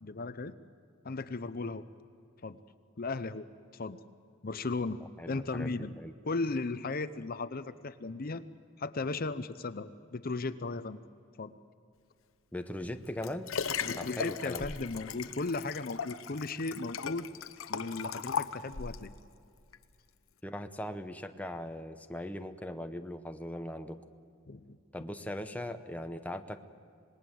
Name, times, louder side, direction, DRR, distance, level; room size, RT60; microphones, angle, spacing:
voice 1, 0.0-0.5 1.0-1.8 2.4-2.6 3.0-3.5 3.7-4.0 4.4-5.0 5.3-6.0 6.2-8.4 8.8-11.0 11.4-11.5 13.8-17.3 17.7-19.1 24.5-24.8, left 3 dB, 45° left, 12 dB, 0.7 m, -36 dB
voice 2, 5.2-6.1 12.5-13.5 14.0-14.7 20.4-24.0 24.9-26.6, left 1 dB, 5° left, 7 dB, 0.8 m, -39 dB
Liquid, 12.8-19.1 19.7-19.8, left 6 dB, 80° left, 0.9 m, -37 dB
26.5 x 20.0 x 7.8 m, 2.4 s
head